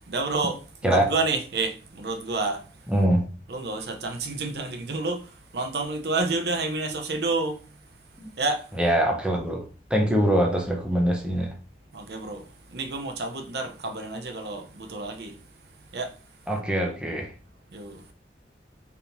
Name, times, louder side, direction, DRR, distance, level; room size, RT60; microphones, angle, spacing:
voice 1, 0.1-2.6 3.5-5.2 5.5-7.6 8.4-8.6 11.9-12.4 12.7-15.3 15.9-16.1 17.7-18.0, right 3 dB, 65° right, 0.7 m, -29 dB
voice 2, 2.9-3.2 8.2-8.3 8.8-9.6 9.9-11.5 16.5-17.3, right 1 dB, 5° right, 0.7 m, -23 dB
4.5 x 3.5 x 2.6 m
head